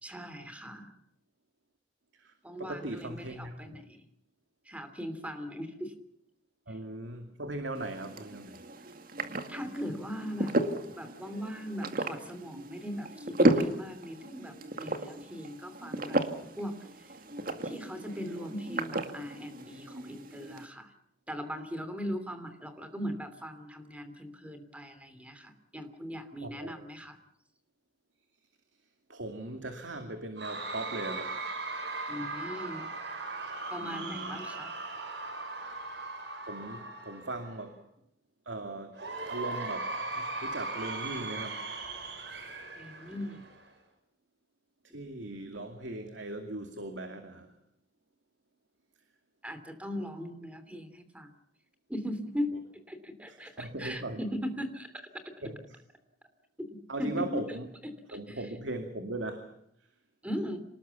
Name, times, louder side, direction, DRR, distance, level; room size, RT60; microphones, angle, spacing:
voice 1, 0.0-0.9 2.4-4.0 4.6-5.9 6.7-6.8 9.5-10.6 11.0-16.2 16.6-17.1 17.6-20.9 21.3-27.2 32.1-32.9 33.7-34.7 42.8-43.4 49.4-51.3 51.9-52.6 52.9-55.2 56.6-57.3 57.8-58.4 60.2-60.6, equal, 10° right, 9 dB, 2.9 m, -39 dB
voice 2, 2.6-3.8 6.7-8.6 26.4-26.7 29.1-31.5 31.9-32.0 33.8-34.4 36.5-37.8 38.4-39.0 39.3-41.8 44.9-47.5 53.3-54.3 55.4-55.5 56.9-57.7 58.1-59.5, right 2 dB, 90° right, 6 dB, 2.4 m, -39 dB
sound 1, 7.8-20.7, right 1 dB, 50° right, 2.1 m, -34 dB
Cheering / Crowd, 30.4-37.7 38.9-43.7, right 3 dB, 70° right, 5.6 m, -38 dB
26.5 x 19.5 x 7.1 m, 0.73 s
head